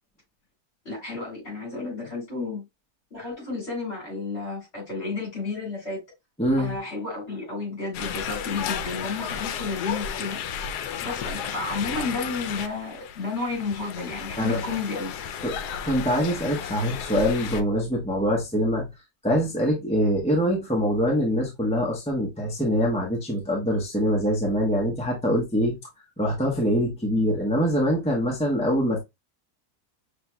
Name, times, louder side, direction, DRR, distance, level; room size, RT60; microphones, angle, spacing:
voice 1, 0.8-2.6 3.1-6.0 6.6-10.4 11.0-15.1, left 3 dB, 40° left, 3.4 m, -32 dB
voice 2, 6.4-6.8 14.4-14.6 15.4-15.5 15.8-18.9 19.2-25.8 26.2-29.0, equal, 5° left, 0.8 m, -24 dB
sound 1, 7.9-17.6, left 8 dB, 85° left, 1.1 m, -33 dB
5.9 x 3.2 x 2.2 m
omnidirectional pair, 1.7 m